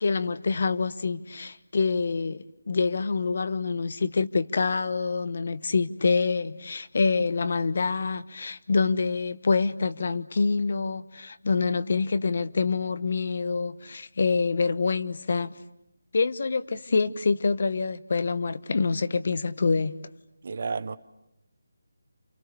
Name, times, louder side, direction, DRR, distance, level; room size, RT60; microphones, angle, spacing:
voice 1, 0.0-15.5 16.1-20.0, left 4 dB, 50° left, 1.1 m, -26 dB
voice 2, 20.4-21.0, right 4 dB, 45° right, 1.0 m, -31 dB
29.5 x 28.5 x 6.9 m
figure-of-eight pair, 165°, 0 cm